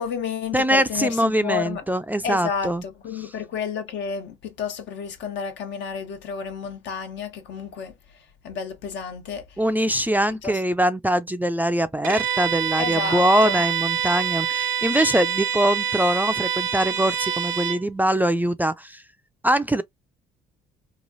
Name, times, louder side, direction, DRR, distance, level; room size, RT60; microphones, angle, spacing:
voice 1, 0.0-1.8 2.2-7.9 8.4-9.4 10.4-10.6 12.8-13.6, left 6 dB, 75° left, 1.1 m, -31 dB
voice 2, 0.5-2.8 3.2-3.3 9.6-19.0 19.4-19.8, right 1 dB, 10° right, 0.4 m, -22 dB
Bowed string instrument, 12.0-17.8, right 9 dB, 85° right, 0.7 m, -26 dB
3.1 x 2.4 x 2.6 m
supercardioid pair, 65°, 19 cm